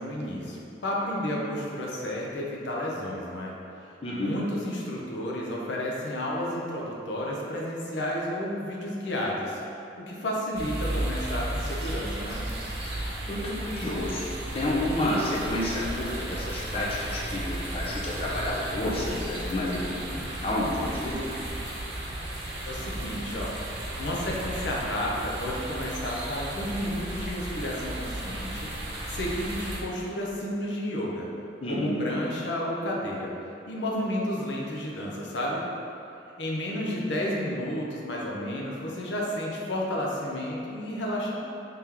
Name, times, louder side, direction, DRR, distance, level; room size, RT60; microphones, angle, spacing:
voice 1, 0.0-3.5 4.1-9.6 10.0-12.4 22.7-23.6 24.0-28.7 29.1-31.3 31.7-33.4 33.7-35.6 36.4-41.4, left 1 dB, 85° left, -3 dB, 0.6 m, -31 dB
voice 2, 4.0-4.4 13.3-14.3 14.5-21.2 31.6-32.0, left 1 dB, 35° left, -5 dB, 0.4 m, -30 dB
sound 1, 10.5-29.8, right 1 dB, 70° right, 0.7 m, -34 dB
3.6 x 3.3 x 2.9 m, 2.8 s
head